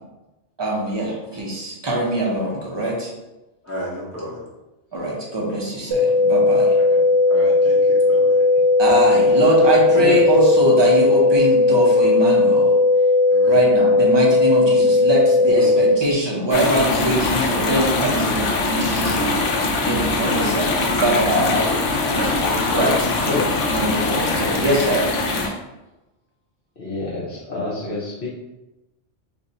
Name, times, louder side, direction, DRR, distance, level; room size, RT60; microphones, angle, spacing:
voice 1, 0.6-3.1 4.9-6.8 8.8-12.8 13.5-19.4 19.8-21.8 22.7-23.1 23.7-25.1 25.4-25.5, right 1 dB, 25° right, -3 dB, 0.6 m, -22 dB
voice 2, 3.6-4.4 6.8-8.4 13.3-13.6 15.6-15.8 19.2-19.5 20.0-20.3 22.1-22.8, equal, 15° left, -8 dB, 0.8 m, -33 dB
sound 1, 5.9-15.9, left 3 dB, 70° right, 0.9 m, -16 dB
voice 3, 9.6-10.2 22.7-22.9 23.3-23.7 26.8-28.3, left 2 dB, 55° left, -7 dB, 0.8 m, -28 dB
sound 2, 16.5-25.5, left 3 dB, 85° left, 0.9 m, -22 dB
2.6 x 2.3 x 4.0 m, 0.99 s
omnidirectional pair, 1.2 m